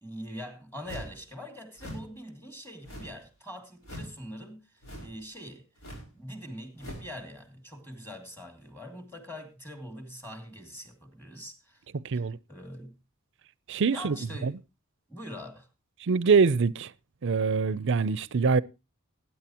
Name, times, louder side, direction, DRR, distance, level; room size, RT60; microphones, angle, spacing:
voice 1, 0.0-4.7 5.0-5.6 6.1-11.8 12.1-12.9 13.9-14.5 15.1-15.7, equal, 10° left, 2.4 m, -43 dB
sound 1, 0.8-1.2 1.8-2.1 2.8-3.3 3.8-4.2 4.8-5.2 5.8-6.1 6.8-7.1, equal, 75° left, 5.1 m, -42 dB
voice 2, 11.9-12.4 13.7-14.2 14.4-14.5 16.0-16.9 17.2-18.6, right 5 dB, 60° right, 0.5 m, -24 dB
19.5 x 9.7 x 2.9 m
head